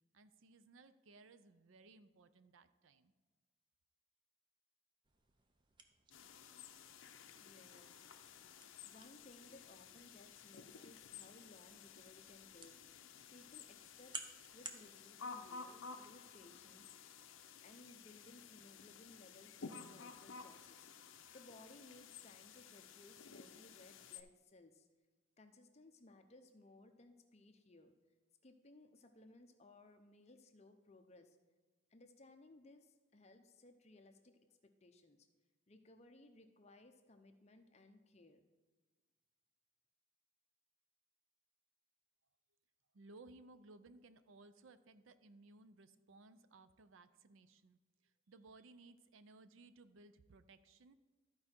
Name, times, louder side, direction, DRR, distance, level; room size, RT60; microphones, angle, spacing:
voice 1, 0.1-3.1 42.9-50.9, right 3 dB, 75° right, 12 dB, 0.5 m, -61 dB
sound 1, 5.0-14.9, right 4 dB, 25° right, 0.5 m, -57 dB
sound 2, 6.1-24.2, left 5 dB, 70° left, 0.6 m, -54 dB
voice 2, 7.4-8.1 8.8-12.8 13.3-14.2 14.4-16.9 17.6-24.9 25.4-27.9 28.4-31.4 31.9-35.3 35.7-38.4, left 2 dB, 30° left, 7 dB, 0.6 m, -62 dB
13.5 x 4.8 x 4.4 m, 1.3 s
head